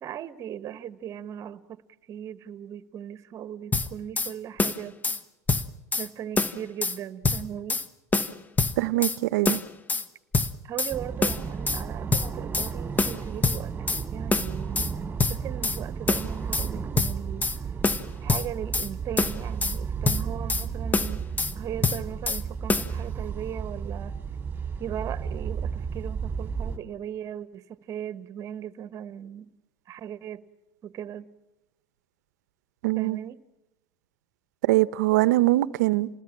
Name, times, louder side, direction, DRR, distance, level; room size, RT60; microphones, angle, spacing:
voice 1, 0.0-1.8 2.1-5.0 6.0-7.8 10.6-13.7 14.1-15.0 15.3-17.5 18.2-21.3 21.5-24.2 24.8-29.5 29.9-30.4 30.8-31.3 32.9-33.4, right 10 dB, 35° right, 1.3 m, -38 dB
sound 1, 3.7-4.3 4.6-5.2 5.5-6.1 6.4-7.0 7.2-7.9 8.1-9.2 9.5-10.1 10.3-10.9 11.2-11.8 12.1-12.7 13.0-14.0 14.3-14.9 15.2-15.8 16.1-16.7 17.0-17.6 17.8-18.9 19.2-19.8 20.1-20.7 20.9-21.5 21.8-22.4 22.7-22.9, left 3 dB, 20° left, 1.1 m, -25 dB
voice 2, 8.8-9.6 32.8-33.2 34.6-36.1, right 18 dB, 80° right, 0.8 m, -22 dB
sound 2, 10.9-26.8, right 6 dB, 20° right, 2.5 m, -33 dB
28.0 x 20.0 x 7.4 m
supercardioid pair, 115°, 9 cm